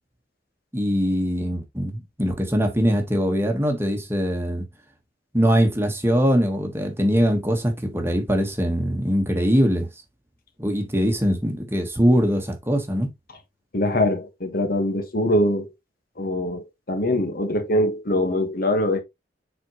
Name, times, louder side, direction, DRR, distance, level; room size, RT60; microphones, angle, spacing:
voice 1, 0.7-4.6 5.3-9.9 10.6-13.1, equal, 15° right, 1.3 m, -22 dB
voice 2, 13.7-15.7 16.2-19.0, left 1 dB, 55° left, 1.3 m, -23 dB
7.5 x 4.4 x 3.0 m
head